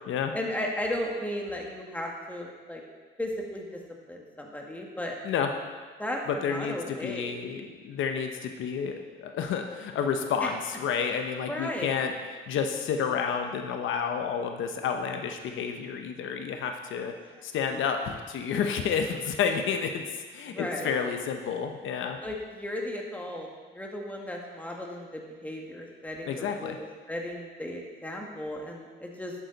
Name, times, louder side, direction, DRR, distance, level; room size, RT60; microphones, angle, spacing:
voice 1, 0.3-2.8 3.2-3.8 4.1-5.2 6.0-7.4 10.4-10.5 11.5-11.9 17.3-17.4 17.7-17.9 20.5-20.9 22.2-23.5 23.7-29.3, left 1 dB, 5° left, -1 dB, 1.8 m, -35 dB
voice 2, 6.3-12.1 12.5-17.1 17.4-20.1 20.3-22.2 26.3-26.8, left 7 dB, 80° left, 5 dB, 0.9 m, -30 dB
11.0 x 8.8 x 4.1 m, 1.4 s
cardioid pair, 90°, 20 cm